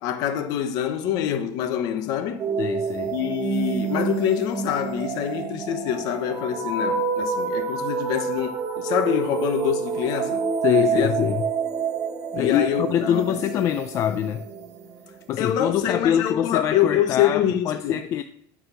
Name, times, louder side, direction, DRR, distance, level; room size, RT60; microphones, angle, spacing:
voice 1, 0.0-2.5 3.1-10.5 10.9-11.1 12.4-13.3 13.5-13.6 15.4-17.9, left 10 dB, 50° left, 0.9 m, -25 dB
sound 1, 2.4-15.1, right 6 dB, 35° right, 1.1 m, -28 dB
voice 2, 2.6-3.1 10.6-11.4 12.3-14.4 15.3-18.2, left 10 dB, 35° left, 0.4 m, -24 dB
9.7 x 6.3 x 5.6 m
cardioid pair, 165°, 8 cm